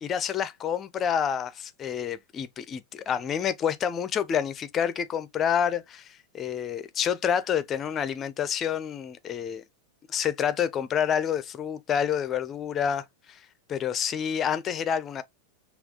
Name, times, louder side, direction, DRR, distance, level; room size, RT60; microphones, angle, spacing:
voice 1, 0.0-9.6 10.1-13.4 13.7-15.2, left 8 dB, 25° left, 0.4 m, -28 dB
5.6 x 2.3 x 2.3 m
figure-of-eight pair, 90°, 0 cm